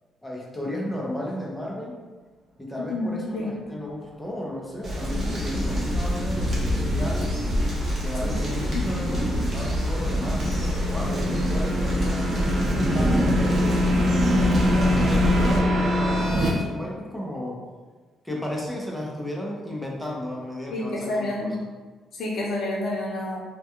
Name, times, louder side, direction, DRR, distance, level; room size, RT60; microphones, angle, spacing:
voice 1, 0.2-2.0 2.6-7.4 8.0-12.4 12.9-17.6 18.2-21.3, left 1 dB, 5° left, -3 dB, 0.6 m, -34 dB
voice 2, 2.9-3.6 8.2-8.8 20.7-21.5 22.1-23.4, left 1 dB, 65° left, -3 dB, 0.7 m, -29 dB
sound 1, 4.8-15.6, equal, 45° right, 0.8 m, -25 dB
sound 2, 5.3-16.5, left 1 dB, 75° right, 0.5 m, -27 dB
2.3 x 2.2 x 2.8 m, 1.3 s
cardioid pair, 90°, 0 cm